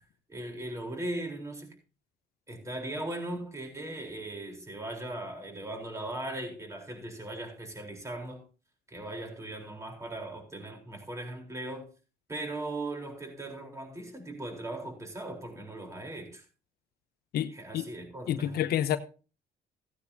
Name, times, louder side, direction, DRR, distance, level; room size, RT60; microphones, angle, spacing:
voice 1, 0.3-1.8 2.5-8.4 8.9-11.9 12.3-16.4 17.5-18.6, right 1 dB, 15° right, 3.9 m, -38 dB
voice 2, 17.3-17.9 18.3-19.0, left 11 dB, 65° left, 0.9 m, -29 dB
16.5 x 9.6 x 2.8 m
cardioid pair, 110°, 17 cm